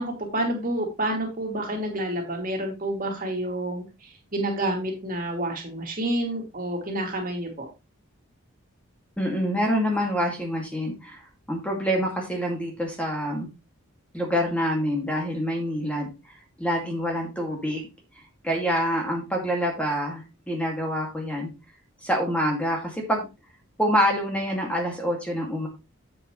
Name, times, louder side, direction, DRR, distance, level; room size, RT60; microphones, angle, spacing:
voice 1, 0.0-7.7, right 1 dB, 40° right, 1 dB, 2.6 m, -29 dB
voice 2, 9.2-13.5 14.1-16.1 16.6-17.9 18.4-21.5 22.0-23.3 23.8-25.7, equal, 5° left, 0 dB, 2.2 m, -26 dB
9.6 x 7.8 x 3.2 m, 0.27 s
head